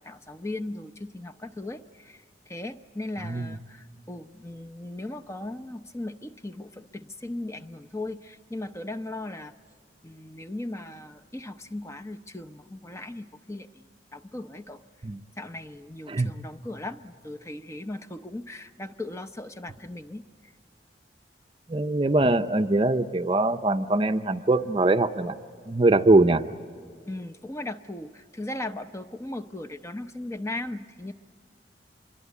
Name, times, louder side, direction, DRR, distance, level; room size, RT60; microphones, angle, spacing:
voice 1, 0.0-9.5 10.0-13.8 14.1-14.8 15.4-20.2 27.1-31.1, left 2 dB, 15° left, 9 dB, 0.7 m, -37 dB
voice 2, 3.2-3.6 15.0-15.2 16.1-16.3 21.7-25.3 25.7-26.4, right 2 dB, 30° right, 9 dB, 0.6 m, -22 dB
26.0 x 23.0 x 8.3 m, 2.1 s
head